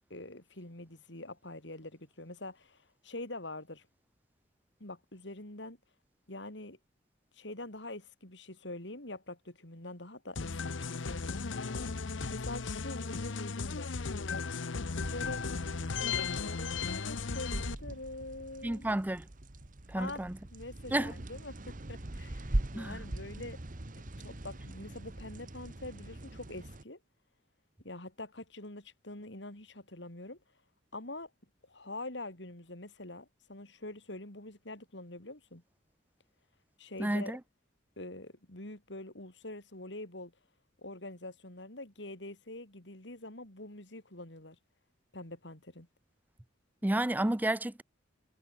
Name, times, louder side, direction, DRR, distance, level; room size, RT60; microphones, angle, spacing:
voice 1, 0.1-3.9 4.8-5.8 6.3-6.8 7.3-11.6 12.3-14.5 15.1-15.4 16.0-18.9 19.9-20.2 20.5-23.6 24.2-27.0 27.8-30.4 30.9-31.3 31.7-35.6 36.8-37.3 38.0-40.3 40.8-44.6 45.1-45.9, left 2 dB, 65° left, 4.6 m, -45 dB
sound 1, 10.4-17.7, left 4 dB, 90° left, 0.9 m, -36 dB
sound 2, 15.0-26.8, right 1 dB, 45° right, 1.4 m, -41 dB
voice 2, 18.6-19.3 19.9-20.4 20.9-21.1 22.7-23.0 37.0-37.4 46.8-47.8, right 1 dB, 10° right, 0.5 m, -31 dB
head